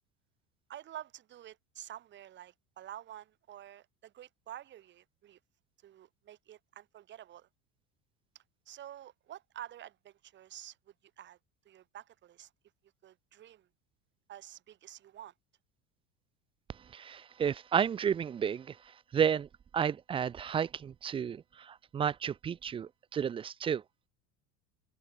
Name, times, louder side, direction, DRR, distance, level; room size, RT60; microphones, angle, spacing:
voice 1, 0.7-5.4 5.8-7.5 8.3-11.4 11.6-12.5 13.0-13.7 14.3-15.3, right 12 dB, 35° right, 1.6 m, -49 dB
voice 2, 16.9-18.8 19.1-19.5 19.7-23.8, right 8 dB, 15° right, 0.4 m, -32 dB
supercardioid pair, 135°, 31 cm